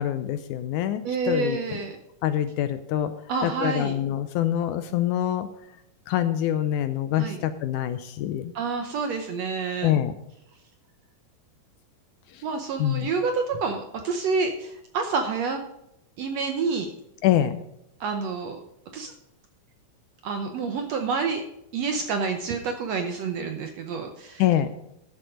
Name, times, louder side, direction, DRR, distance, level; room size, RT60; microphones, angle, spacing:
voice 1, 0.0-1.8 2.2-3.1 3.4-5.5 6.1-8.5 9.8-10.1 12.3-12.4 12.8-13.1 17.2-17.6 24.4-24.7, left 11 dB, 80° left, 11 dB, 1.9 m, -25 dB
voice 2, 1.0-2.0 3.3-3.9 7.2-7.4 8.5-10.0 12.4-15.6 16.2-16.9 18.0-18.6 18.9-19.1 20.2-21.4 21.7-24.4, right 4 dB, 70° right, 6 dB, 1.6 m, -28 dB
12.5 x 7.3 x 5.0 m, 0.83 s
omnidirectional pair, 3.9 m